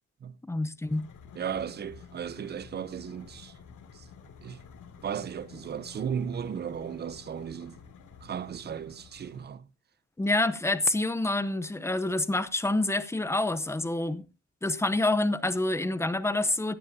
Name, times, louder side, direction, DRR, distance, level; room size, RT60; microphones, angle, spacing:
voice 1, 0.4-1.1 10.2-14.3 14.6-16.7, left 2 dB, 10° left, 0.7 m, -27 dB
sound 1, 0.9-9.5, left 6 dB, 85° left, 2.6 m, -51 dB
voice 2, 1.3-3.5 3.9-4.1 4.4-4.6 5.0-7.8 8.2-9.7, right 8 dB, 35° right, 0.5 m, -35 dB
16.5 x 13.0 x 2.7 m
wide cardioid pair, 175°, 30 cm